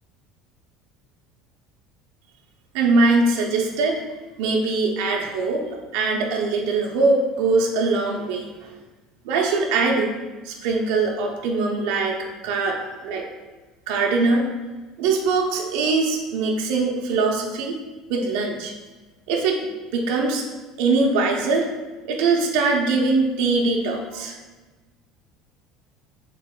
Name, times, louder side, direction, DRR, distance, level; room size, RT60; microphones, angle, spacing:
voice 1, 2.7-4.0 4.4-5.6 5.9-8.7 9.2-10.2 10.4-12.2 12.4-13.2 13.9-14.5 15.0-17.8 18.1-18.7 19.3-19.6 19.9-20.4 20.8-21.7 22.1-24.3, right 3 dB, 75° right, 0 dB, 0.6 m, -22 dB
4.1 x 2.9 x 3.6 m, 1.2 s
cardioid pair, 135°, 0 cm